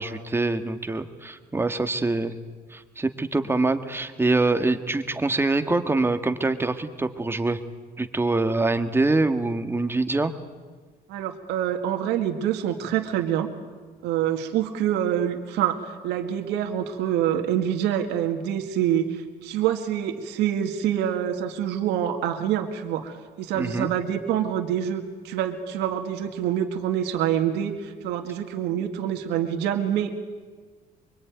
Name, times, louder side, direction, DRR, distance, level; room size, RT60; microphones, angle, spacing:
voice 1, 0.0-2.4 2.7-7.6 8.0-10.3 23.6-23.9, right 2 dB, 15° right, 8 dB, 1.8 m, -24 dB
voice 2, 11.1-13.5 14.0-30.1, right 10 dB, 90° right, 5 dB, 2.0 m, -26 dB
24.0 x 23.5 x 9.4 m, 1.5 s
cardioid pair, 110°, 17 cm